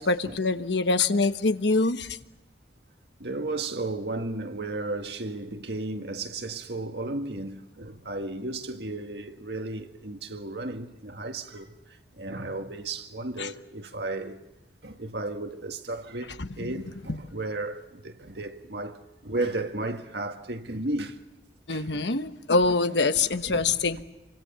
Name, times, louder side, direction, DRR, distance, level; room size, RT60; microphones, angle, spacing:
voice 1, 0.0-2.1 13.4-13.5 16.4-16.5 21.7-24.0, left 3 dB, 90° left, 1.2 m, -24 dB
voice 2, 3.2-11.7 12.2-14.4 14.8-21.2 21.7-22.1 23.4-23.7, right 2 dB, 75° right, 1.8 m, -34 dB
28.5 x 25.0 x 7.0 m
head